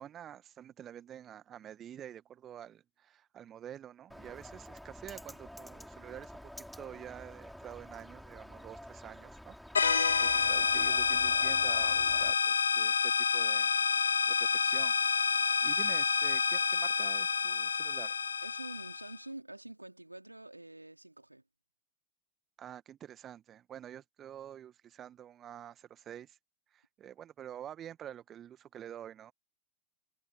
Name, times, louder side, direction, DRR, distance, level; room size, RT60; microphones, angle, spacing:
voice 1, 0.0-15.0 15.6-18.2 22.6-26.4 26.7-29.3, right 10 dB, 25° right, 2.1 m, -48 dB
Bird, 4.1-12.3, equal, ahead, 4.9 m, -49 dB
sound 1, 9.7-19.1, left 6 dB, 75° left, 0.8 m, -28 dB
voice 2, 18.4-21.4, right 1 dB, 85° right, 3.8 m, -47 dB
figure-of-eight pair, 90°, 0 cm